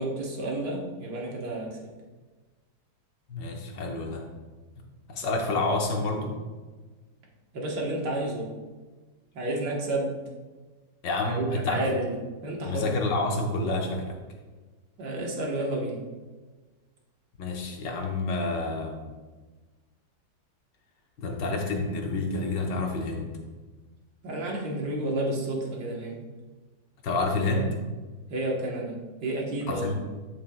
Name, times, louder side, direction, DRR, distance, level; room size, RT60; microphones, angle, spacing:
voice 1, 0.0-1.8 7.5-8.5 9.3-10.2 11.3-12.1 12.4-12.9 15.0-16.0 24.2-26.2 27.4-27.6 28.3-29.9, right 1 dB, 70° right, -2 dB, 1.9 m, -30 dB
voice 2, 3.3-4.3 5.1-6.4 11.0-11.8 12.7-14.2 17.4-19.0 21.2-23.3 27.0-27.7 29.7-29.9, left 2 dB, 85° left, 2 dB, 1.7 m, -28 dB
8.8 x 7.3 x 2.3 m, 1.3 s
omnidirectional pair, 1.9 m